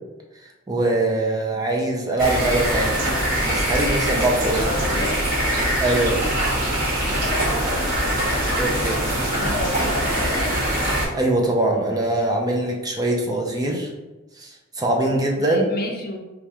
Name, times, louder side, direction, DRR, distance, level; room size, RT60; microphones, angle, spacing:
voice 1, 0.7-3.1 3.4-4.6 5.8-6.3 8.6-9.1 11.1-13.9 14.4-15.7, right 2 dB, 20° right, 0 dB, 0.4 m, -22 dB
sound 1, 2.2-11.1, right 1 dB, 45° right, 1.1 m, -23 dB
voice 2, 4.5-5.2 7.1-8.0 9.3-10.6 15.4-16.2, left 2 dB, 45° left, 2 dB, 0.5 m, -31 dB
4.4 x 2.3 x 2.7 m, 1.1 s
head